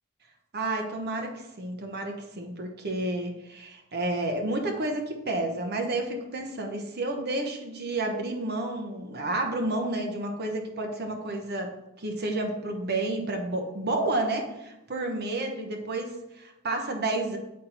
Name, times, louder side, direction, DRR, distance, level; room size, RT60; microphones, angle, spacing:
voice 1, 0.5-11.7 12.0-17.4, right 2 dB, 50° right, 3 dB, 0.9 m, -30 dB
7.5 x 4.3 x 4.0 m, 0.91 s
head